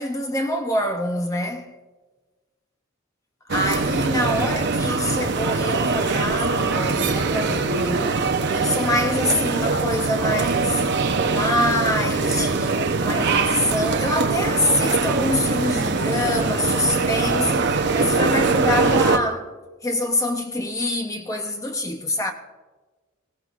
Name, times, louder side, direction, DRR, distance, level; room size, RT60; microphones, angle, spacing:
voice 1, 0.0-1.8 3.5-10.8 11.3-19.5 19.8-22.3, left 1 dB, 15° left, 0.8 m, -25 dB
sound 1, 3.5-19.2, right 4 dB, 55° right, 0.8 m, -22 dB
22.5 x 17.0 x 2.5 m
head